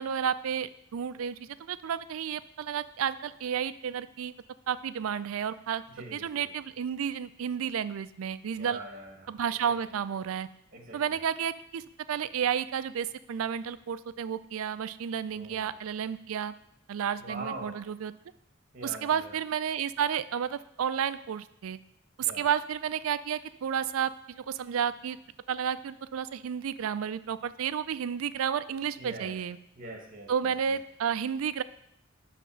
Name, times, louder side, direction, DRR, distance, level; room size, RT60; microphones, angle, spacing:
voice 1, 0.0-4.3 4.7-5.8 6.1-8.8 9.3-10.5 10.9-11.8 12.1-16.6 16.9-18.1 18.8-21.8 22.2-25.2 25.5-29.6 30.3-31.6, right 8 dB, 85° right, 15 dB, 0.4 m, -31 dB
voice 2, 5.9-6.5 8.6-9.3 10.7-11.0 15.3-15.7 17.2-17.8 18.7-19.3 22.2-22.5 29.0-29.4 29.8-30.5, right 2 dB, 45° right, 1 dB, 1.7 m, -42 dB
9.3 x 3.4 x 6.2 m, 0.78 s
head